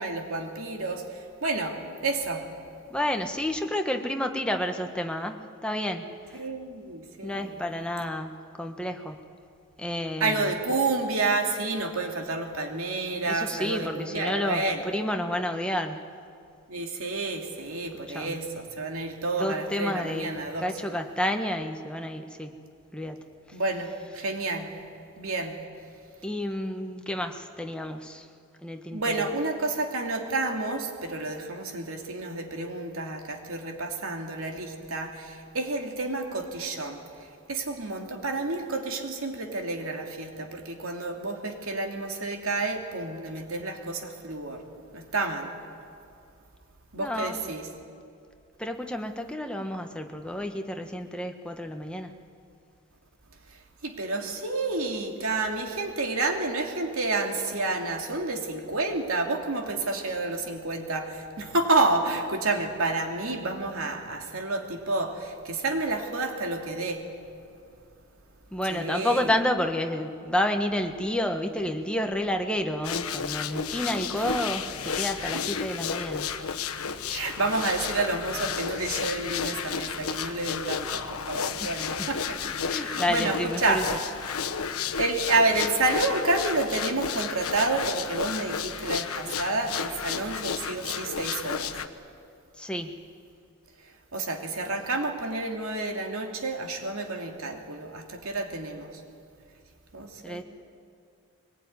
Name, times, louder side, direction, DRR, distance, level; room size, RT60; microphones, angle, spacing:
voice 1, 0.0-2.5 6.3-7.6 8.0-8.1 10.2-14.8 16.7-21.0 23.5-24.7 25.2-25.6 28.9-44.6 44.9-45.5 46.9-47.7 53.5-67.1 68.7-69.3 74.1-74.2 77.1-83.9 85.0-91.8 94.1-99.0 99.9-100.4, right 2 dB, 70° right, 3 dB, 2.7 m, -30 dB
voice 2, 2.9-6.4 7.2-8.3 8.6-9.2 9.8-10.5 13.3-16.1 18.1-18.4 19.4-20.3 20.6-22.6 22.9-23.3 26.2-28.3 28.6-29.2 47.0-47.4 48.6-52.2 68.5-76.3 81.6-82.1 82.7-83.8 92.6-93.0 100.2-100.4, left 1 dB, 5° left, 4 dB, 1.3 m, -30 dB
sound 1, 72.8-91.9, left 6 dB, 85° left, 1.2 m, -32 dB
22.5 x 20.5 x 9.7 m, 2.5 s
head